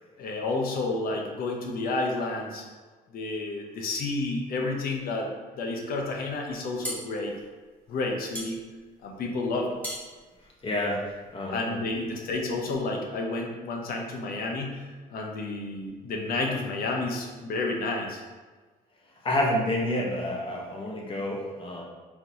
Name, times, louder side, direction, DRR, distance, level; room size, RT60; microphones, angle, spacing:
voice 1, 0.2-2.6 3.1-5.3 5.6-7.3 7.9-8.6 9.0-9.8 11.5-18.2, left 3 dB, 60° left, 1 dB, 0.9 m, -30 dB
sound 1, 6.5-11.4, equal, 10° left, 1.4 m, -40 dB
voice 2, 10.6-11.0 11.3-11.7 19.2-21.8, left 1 dB, 30° left, -2 dB, 1.1 m, -28 dB
4.4 x 3.8 x 2.8 m, 1.4 s
cardioid pair, 110°, 17 cm